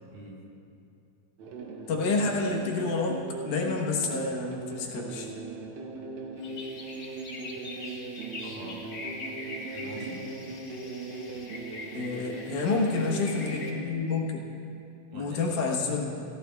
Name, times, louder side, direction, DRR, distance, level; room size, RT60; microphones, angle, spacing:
voice 1, 0.1-0.5 8.4-9.0 9.7-10.3 12.6-12.9 15.1-15.7, right 1 dB, 85° right, -4 dB, 3.7 m, -43 dB
sound 1, 1.4-13.9, right 3 dB, 70° right, 2.0 m, -39 dB
voice 2, 1.9-5.3 11.9-14.4 15.1-16.2, left 3 dB, 70° left, -1 dB, 2.6 m, -29 dB
sound 2, 6.4-13.7, left 2 dB, 50° left, 2.9 m, -43 dB
17.0 x 15.0 x 2.3 m, 2.7 s
omnidirectional pair, 3.8 m